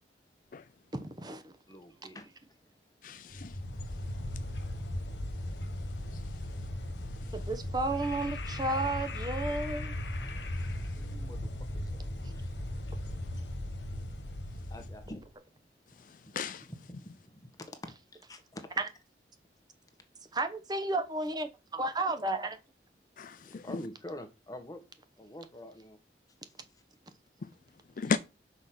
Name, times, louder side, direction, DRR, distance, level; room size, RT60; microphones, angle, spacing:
voice 1, 0.9-1.5 7.3-9.9 18.8-18.9 20.3-22.6, right 2 dB, 25° right, 1.0 m, -32 dB
voice 2, 1.7-2.6 6.5-6.6 10.7-12.0 12.3-12.6 13.9-14.0 14.5-15.3 15.9-16.3 16.7-18.7 23.4-24.8 25.2-26.0, left 1 dB, 20° left, 1.4 m, -47 dB
voice 3, 3.0-3.6 6.1-6.2 7.2-7.3 16.0-16.7 23.2-23.6 27.4-27.5 28.0-28.2, left 5 dB, 50° left, 0.4 m, -35 dB
sound 1, 3.3-15.2, left 1 dB, 85° left, 1.2 m, -37 dB
6.3 x 4.9 x 5.9 m
head